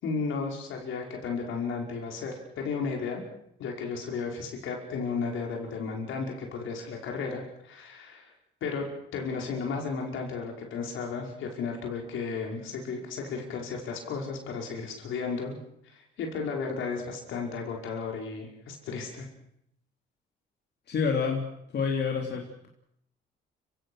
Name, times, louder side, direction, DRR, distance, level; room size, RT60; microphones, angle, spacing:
voice 1, 0.0-3.2 3.6-8.3 8.6-8.9 9.1-15.6 15.8-19.3, left 5 dB, 80° left, 1 dB, 5.4 m, -34 dB
voice 2, 20.9-22.7, left 5 dB, 60° left, 0 dB, 3.4 m, -29 dB
29.5 x 17.0 x 6.4 m, 0.74 s
cardioid pair, 90°, 20 cm